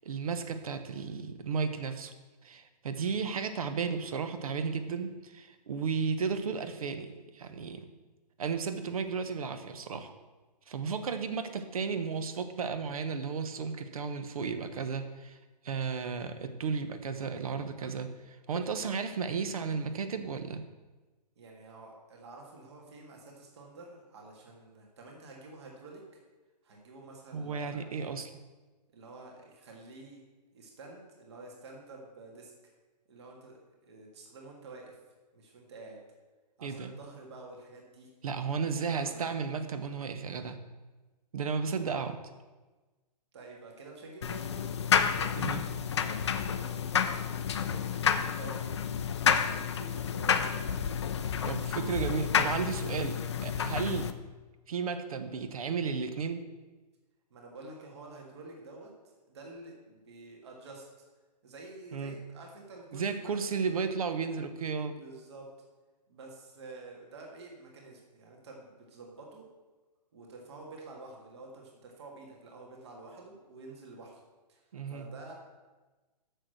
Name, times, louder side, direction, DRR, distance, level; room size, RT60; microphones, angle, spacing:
voice 1, 0.0-2.1 2.4-7.9 8.4-10.1 10.7-15.4 15.6-20.6 27.3-28.3 36.6-36.9 38.2-40.6 41.3-42.2 45.4-45.6 51.5-54.1 54.7-56.5 61.9-62.1 62.9-65.0 74.7-75.1, right 5 dB, 55° right, 9 dB, 1.0 m, -34 dB
voice 2, 21.4-26.0 26.6-27.9 28.9-30.2 30.5-32.5 33.1-35.0 35.3-36.0 36.6-38.1 38.6-39.3 43.3-50.7 51.7-52.2 53.8-54.0 57.3-61.1 61.4-63.3 64.9-65.5 66.1-69.4 70.1-74.2 74.5-75.3, right 2 dB, 40° right, 0 dB, 1.9 m, -49 dB
sound 1, 44.2-54.1, left 7 dB, 40° left, 0.5 m, -30 dB
6.6 x 6.6 x 7.8 m, 1.2 s
hypercardioid pair, 175°, 21 cm